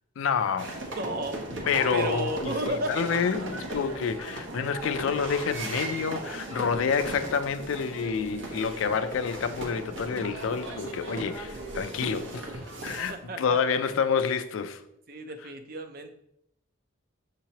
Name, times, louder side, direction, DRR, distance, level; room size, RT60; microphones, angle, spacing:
voice 1, 0.2-0.8 1.7-12.5 12.8-14.8, left 6 dB, 90° left, 0.4 m, -28 dB
sound 1, 0.6-13.1, right 2 dB, 70° right, 0.9 m, -37 dB
voice 2, 1.0-1.4 1.9-2.9 12.9-13.6 15.1-16.1, right 1 dB, 50° right, 0.4 m, -33 dB
6.5 x 2.9 x 2.8 m
head